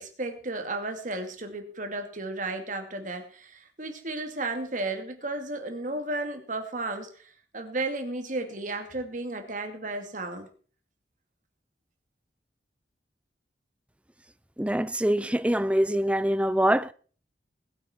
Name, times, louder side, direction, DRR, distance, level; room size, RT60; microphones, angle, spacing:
voice 1, 0.0-10.5, right 2 dB, 45° right, 2.4 m, -34 dB
voice 2, 14.6-16.9, right 1 dB, 5° right, 0.5 m, -24 dB
21.0 x 8.6 x 4.4 m
head